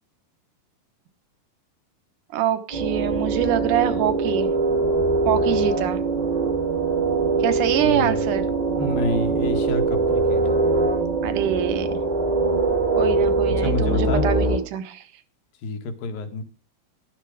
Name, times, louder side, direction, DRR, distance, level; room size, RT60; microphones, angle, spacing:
voice 1, 2.3-4.5 5.3-6.0 7.4-8.4 11.2-12.0 12.9-15.0, right 11 dB, 70° right, 11 dB, 2.7 m, -25 dB
sound 1, 2.7-14.6, right 3 dB, 20° right, 1.0 m, -22 dB
voice 2, 7.8-10.4 13.6-14.2 15.6-16.4, left 2 dB, 80° left, 7 dB, 3.5 m, -29 dB
13.0 x 12.0 x 5.0 m, 0.34 s
omnidirectional pair, 4.1 m